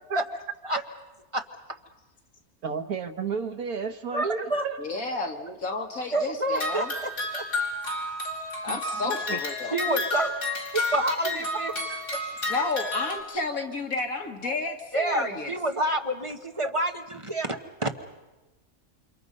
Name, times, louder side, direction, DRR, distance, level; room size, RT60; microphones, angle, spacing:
voice 1, 2.6-5.0 8.7-8.8 9.3-9.4 11.2-11.4 11.9-12.0 14.4-14.6 14.9-15.2, right 5 dB, 85° right, 7 dB, 1.7 m, -32 dB
voice 2, 4.1-4.6 6.1-7.5 9.7-10.3 10.7-11.7 14.9-17.9, right 1 dB, 25° right, 5 dB, 1.1 m, -28 dB
voice 3, 4.8-6.9 8.6-9.8 12.5-15.5, left 3 dB, 75° left, 3 dB, 2.4 m, -31 dB
sound 1, 6.5-13.2, left 2 dB, 55° left, 4.2 m, -31 dB
29.0 x 26.5 x 5.4 m, 1.1 s
omnidirectional pair, 1.5 m